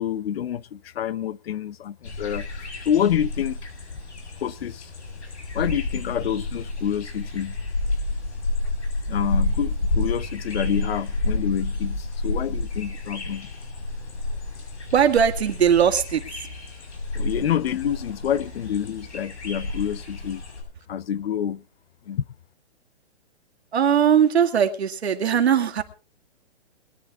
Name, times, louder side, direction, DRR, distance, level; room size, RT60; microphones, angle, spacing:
voice 1, 0.0-3.6 4.4-4.9 5.5-7.6 9.1-13.5 17.1-20.4 20.9-21.6 22.1-22.2, left 9 dB, 65° left, 0.8 m, -27 dB
sound 1, 2.0-20.6, left 2 dB, 85° left, 7.5 m, -30 dB
voice 2, 14.9-16.2 23.7-25.8, right 8 dB, 75° right, 2.1 m, -19 dB
22.0 x 10.5 x 3.6 m
hypercardioid pair, 160°, 33 cm